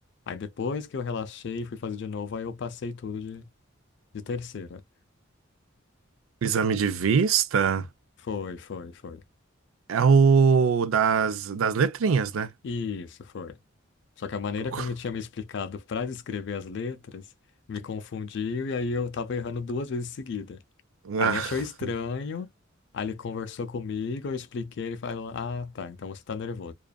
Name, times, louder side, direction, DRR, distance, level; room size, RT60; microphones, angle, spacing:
voice 1, 0.3-3.5 4.1-4.8 8.2-9.2 12.6-13.6 14.2-17.3 17.7-20.6 21.2-22.5 22.9-26.7, left 5 dB, 60° left, 0.4 m, -33 dB
voice 2, 6.4-7.9 9.9-12.5 14.7-14.8 21.0-21.5, right 6 dB, 90° right, 0.4 m, -22 dB
2.4 x 2.3 x 2.2 m
head